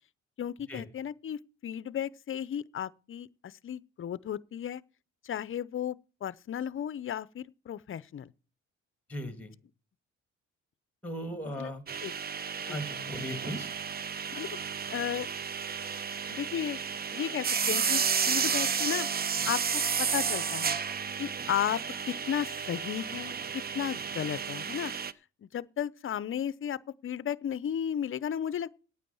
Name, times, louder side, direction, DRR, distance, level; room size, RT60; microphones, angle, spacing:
voice 1, 0.4-4.8 5.2-8.3 11.6-11.7 12.0-12.1 12.7-12.8 14.3-14.5 14.9-15.3 16.3-16.8 17.1-19.1 19.5-20.8 21.2-21.8 22.1-24.9 25.5-28.7, left 9 dB, 45° left, 0.6 m, -34 dB
voice 2, 9.1-9.5 11.0-11.8 12.7-13.7, equal, 5° left, 2.4 m, -37 dB
sound 1, 11.9-25.1, right 6 dB, 30° right, 0.6 m, -32 dB
9.2 x 8.9 x 7.0 m
cardioid pair, 90°, 30 cm